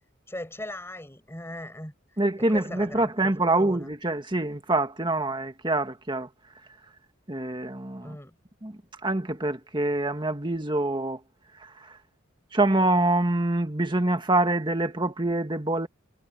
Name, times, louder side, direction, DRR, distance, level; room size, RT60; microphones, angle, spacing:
voice 1, 0.3-2.2 2.5-3.9 8.0-8.3, left 1 dB, 10° left, 7.8 m, -39 dB
voice 2, 2.2-6.3 7.3-8.2 8.6-11.2 11.6-12.0 12.5-15.9, right 2 dB, 25° right, 1.6 m, -25 dB
head